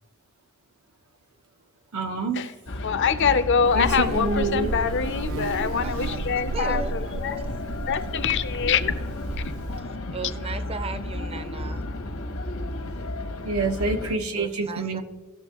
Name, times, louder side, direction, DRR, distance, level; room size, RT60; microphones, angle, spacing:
voice 1, 1.9-2.4 3.7-4.7 13.4-15.0, right 3 dB, 85° right, 1.1 m, -27 dB
sound 1, 2.7-14.2, left 1 dB, 80° left, 1.2 m, -32 dB
voice 2, 2.8-7.5 7.9-10.2, left 6 dB, 55° left, 0.6 m, -25 dB
Buzz, 3.6-9.8, right 4 dB, 65° right, 0.3 m, -34 dB
voice 3, 5.7-6.2 6.5-7.0 7.4-7.5 10.1-11.9 14.3-15.0, right 4 dB, 25° right, 0.6 m, -36 dB
17.5 x 6.7 x 3.0 m
head